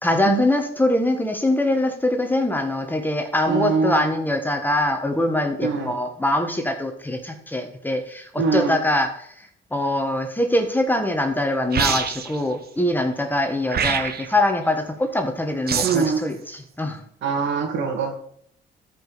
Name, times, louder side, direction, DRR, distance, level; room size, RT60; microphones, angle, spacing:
voice 1, 0.0-17.0, left 1 dB, 10° left, 5 dB, 1.6 m, -23 dB
voice 2, 3.5-4.1 5.6-5.9 8.4-8.8 15.8-16.2 17.2-18.3, right 5 dB, 70° right, 3 dB, 2.5 m, -23 dB
sound 1, 11.7-12.4 13.7-14.4 15.7-16.1, right 7 dB, 50° right, 1.2 m, -25 dB
13.5 x 5.4 x 5.1 m, 0.65 s
cardioid pair, 90°, 20 cm